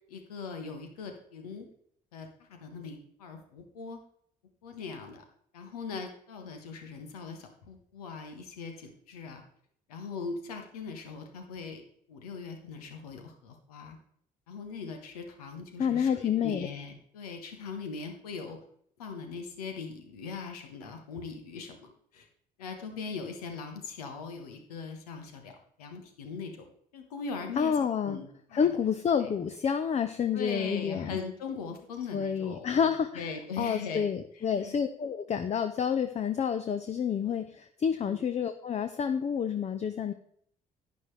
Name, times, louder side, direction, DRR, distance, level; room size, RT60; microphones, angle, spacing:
voice 1, 0.1-1.7 2.1-4.0 4.6-5.2 5.5-9.4 9.9-11.8 12.1-14.0 14.5-18.6 19.0-22.3 22.6-26.7 26.9-28.7 29.2-29.3 30.3-34.1 34.3-34.7 38.0-38.2, left 5 dB, 75° left, 5 dB, 1.5 m, -40 dB
voice 2, 15.8-16.7 27.6-28.2 28.5-31.2 32.1-33.3 33.6-40.1, left 7 dB, 35° left, 9 dB, 0.7 m, -29 dB
11.0 x 9.5 x 3.3 m, 0.65 s
figure-of-eight pair, 50°, 19 cm